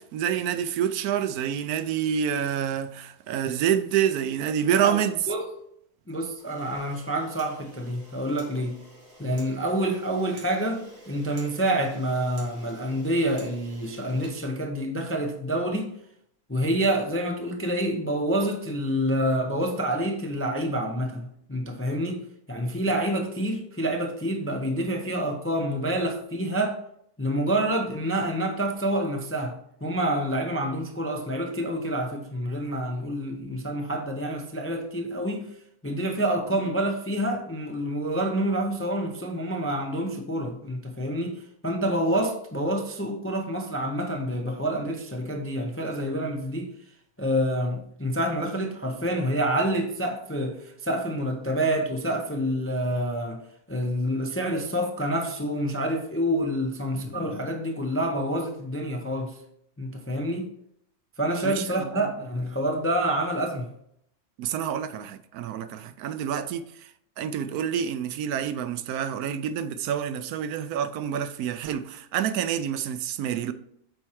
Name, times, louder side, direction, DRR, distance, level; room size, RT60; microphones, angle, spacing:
voice 1, 0.0-5.2 61.4-62.0 64.4-66.6 67.2-73.5, right 9 dB, 85° right, 1.1 m, -27 dB
voice 2, 4.8-5.5 6.1-8.8 9.2-15.9 16.5-26.8 27.2-35.5 35.8-46.7 47.2-53.4 53.7-59.4 59.8-60.5 61.2-63.7, right 1 dB, 20° left, 0.4 m, -27 dB
Camera, 6.4-15.1, right 1 dB, 65° right, 2.6 m, -50 dB
7.8 x 4.4 x 4.7 m
omnidirectional pair, 1.5 m